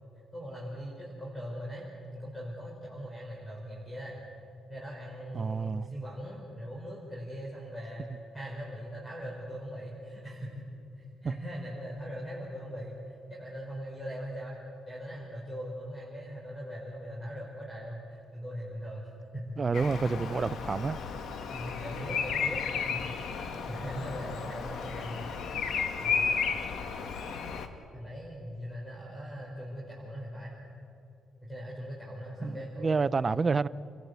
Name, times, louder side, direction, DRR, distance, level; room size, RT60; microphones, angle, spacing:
voice 1, 0.3-4.2 4.7-8.0 8.3-10.7 11.0-19.1 19.3-20.3 21.5-25.2 26.0-26.3 27.9-30.6 31.4-33.6, equal, 10° left, 5.2 m, -40 dB
voice 2, 5.3-5.9 11.3-11.4 19.6-21.0 32.4-33.7, right 4 dB, 35° right, 0.5 m, -29 dB
Bird vocalization bird call bird song, 19.7-27.7, left 6 dB, 70° left, 1.7 m, -33 dB
29.5 x 15.0 x 8.2 m
cardioid pair, 90°, 0 cm